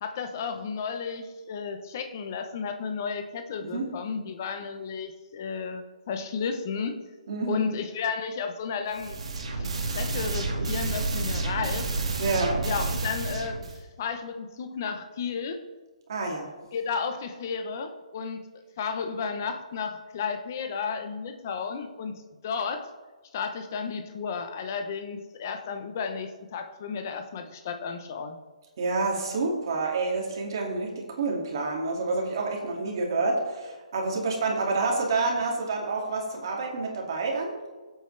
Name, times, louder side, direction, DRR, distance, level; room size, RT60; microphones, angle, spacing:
voice 1, 0.0-7.1 7.5-9.2 9.4-11.9 12.6-13.7 14.0-15.6 16.7-22.9 23.3-28.4, left 5 dB, 25° left, 7 dB, 0.7 m, -33 dB
voice 2, 7.3-7.7 12.2-12.6 16.1-16.5 28.8-37.5, right 3 dB, 35° right, 0 dB, 2.2 m, -28 dB
sound 1, 8.9-13.8, right 3 dB, 55° right, 2.0 m, -30 dB
17.0 x 8.2 x 3.3 m, 1.3 s
hypercardioid pair, 180°, 4 cm